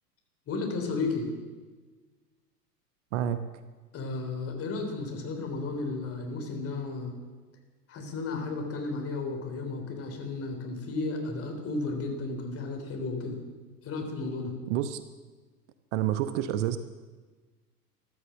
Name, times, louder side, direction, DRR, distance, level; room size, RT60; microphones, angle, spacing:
voice 1, 0.5-1.3 3.9-7.1 7.9-13.4 13.8-14.5, left 3 dB, 30° left, 4 dB, 3.7 m, -33 dB
voice 2, 14.7-15.0 15.9-16.8, right 11 dB, 45° right, 11 dB, 1.0 m, -28 dB
14.0 x 12.5 x 7.5 m, 1.3 s
figure-of-eight pair, 90°, 48 cm